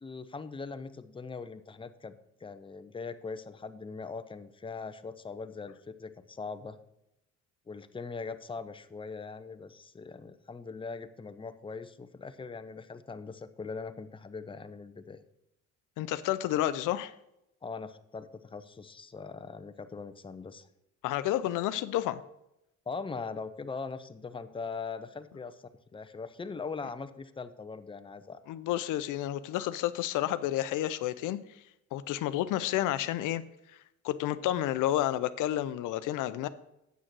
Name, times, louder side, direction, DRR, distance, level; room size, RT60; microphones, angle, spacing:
voice 1, 0.0-6.8 7.7-15.2 17.6-20.7 22.9-25.6 25.9-28.4, left 4 dB, 15° left, 10 dB, 0.6 m, -41 dB
voice 2, 16.0-17.1 21.0-22.2 28.5-31.4 31.9-33.4 34.0-36.5, left 13 dB, 90° left, 13 dB, 0.6 m, -30 dB
8.2 x 6.3 x 6.1 m, 0.84 s
cardioid pair, 90°, 30 cm